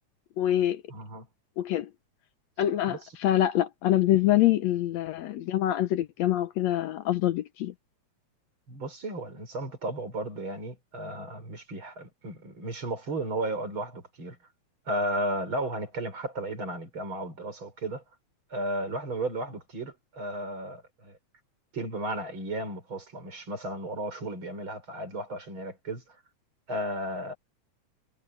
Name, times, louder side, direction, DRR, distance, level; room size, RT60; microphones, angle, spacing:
voice 1, 0.4-0.8 1.6-1.9 2.6-7.7, left 13 dB, 75° left, 1.9 m, -25 dB
voice 2, 0.9-1.3 2.9-3.0 8.7-14.4 14.9-18.0 18.5-21.2 21.7-26.2 26.7-27.3, right 1 dB, 40° right, 6.0 m, -34 dB
omnidirectional pair, 3.3 m